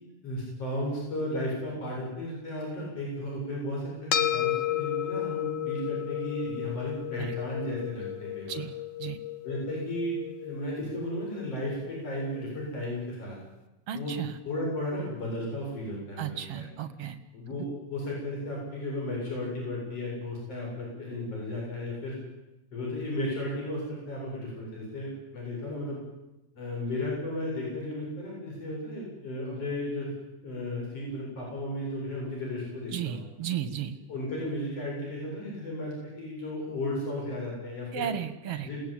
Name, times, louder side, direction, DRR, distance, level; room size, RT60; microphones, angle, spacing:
voice 1, 0.2-8.6 9.4-10.2 10.4-13.4 13.9-14.2 14.5-16.7 17.3-22.2 22.7-26.0 26.6-30.1 30.4-33.2 34.1-38.1 38.6-38.8, left 1 dB, 50° left, -2 dB, 8.8 m, -34 dB
sound 1, 4.1-12.7, left 12 dB, 70° left, 2.7 m, -33 dB
voice 2, 8.5-9.2 13.9-14.4 16.2-17.2 32.9-34.0 37.9-38.8, right 9 dB, 55° right, 10 dB, 2.4 m, -34 dB
28.5 x 18.5 x 9.1 m, 1.0 s
omnidirectional pair, 3.5 m